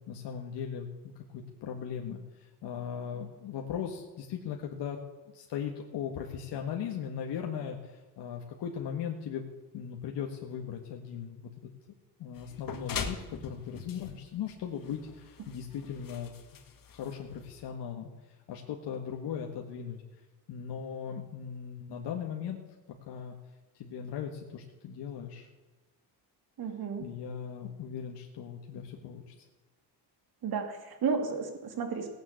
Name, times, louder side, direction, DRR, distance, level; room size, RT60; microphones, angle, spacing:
voice 1, 0.0-5.0 5.3-9.5 9.7-11.7 12.2-16.6 16.9-18.1 18.5-20.0 20.5-22.6 23.1-23.4 23.7-25.5 27.0-29.3, left 8 dB, 80° left, 1 dB, 1.8 m, -38 dB
sound 1, 12.3-17.7, left 6 dB, 55° left, 2.0 m, -42 dB
voice 2, 26.6-27.0 30.4-32.1, right 5 dB, 60° right, 6 dB, 2.9 m, -32 dB
17.5 x 9.6 x 8.4 m, 1.2 s
cardioid pair, 125°, 41 cm